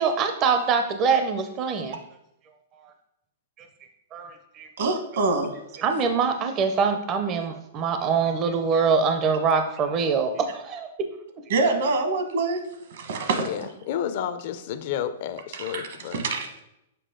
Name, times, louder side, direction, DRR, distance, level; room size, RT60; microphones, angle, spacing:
voice 1, 0.0-2.0 4.1-4.7 5.8-10.9, right 5 dB, 25° right, 6 dB, 0.5 m, -24 dB
voice 2, 4.8-5.6 11.5-12.6 12.9-13.7 15.5-16.5, right 3 dB, 65° right, 6 dB, 1.2 m, -25 dB
voice 3, 13.4-16.2, left 9 dB, 50° left, 12 dB, 0.5 m, -31 dB
6.8 x 4.9 x 3.7 m, 0.82 s
hypercardioid pair, 155°, 0 cm